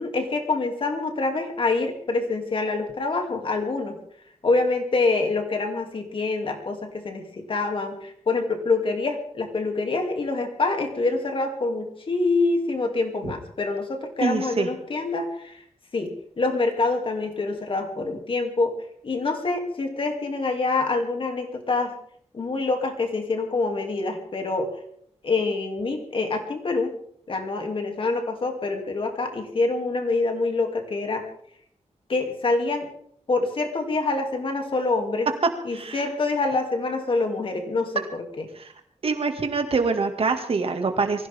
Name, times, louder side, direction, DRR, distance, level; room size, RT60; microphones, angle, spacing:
voice 1, 0.0-4.0 4.4-15.6 15.9-18.7 19.0-21.9 22.3-24.7 25.2-26.9 27.3-31.2 32.1-32.9 33.3-35.3 35.6-38.4, left 3 dB, 45° left, 4 dB, 2.8 m, -26 dB
voice 2, 14.2-14.7 35.7-36.0 38.6-38.7 39.0-41.3, right 4 dB, 50° right, 6 dB, 2.1 m, -25 dB
24.0 x 16.0 x 3.7 m, 0.66 s
wide cardioid pair, 165°, 12 cm